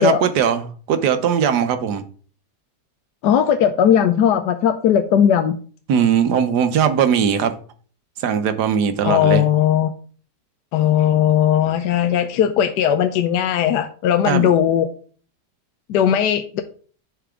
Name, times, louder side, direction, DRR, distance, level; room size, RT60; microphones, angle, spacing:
voice 1, 0.0-2.0 5.9-7.5 8.2-9.4 14.2-14.5, right 8 dB, 75° right, 9 dB, 1.4 m, -19 dB
voice 2, 3.2-5.6 9.0-9.9 10.7-14.9 15.9-16.6, left 9 dB, 80° left, 8 dB, 1.2 m, -17 dB
10.0 x 4.8 x 3.7 m, 0.42 s
omnidirectional pair, 1.8 m